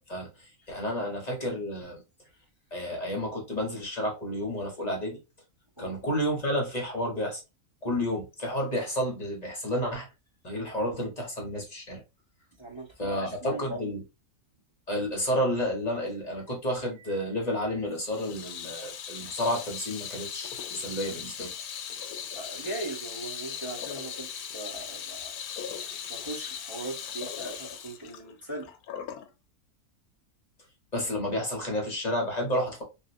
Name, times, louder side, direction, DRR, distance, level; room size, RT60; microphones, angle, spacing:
voice 1, 0.1-2.0 2.7-5.2 5.8-7.4 7.8-10.1 10.4-12.0 13.0-14.0 14.9-21.5 30.9-32.8, equal, 30° left, 0.9 m, -31 dB
voice 2, 12.6-13.8 22.3-25.6 26.1-28.7, right 2 dB, 20° right, 0.9 m, -39 dB
Water tap faucet / Sink (filling or washing), 18.0-29.3, left 8 dB, 85° left, 1.1 m, -39 dB
2.9 x 2.6 x 2.6 m
omnidirectional pair, 1.6 m